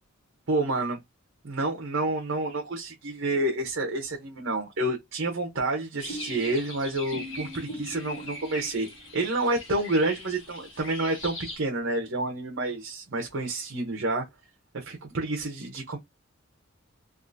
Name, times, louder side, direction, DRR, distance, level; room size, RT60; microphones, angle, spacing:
voice 1, 0.5-1.0 1.4-14.2 14.7-16.0, right 2 dB, 60° right, 0.7 m, -29 dB
sound 1, 6.0-11.6, left 1 dB, 70° left, 1.3 m, -39 dB
3.5 x 2.4 x 2.5 m
head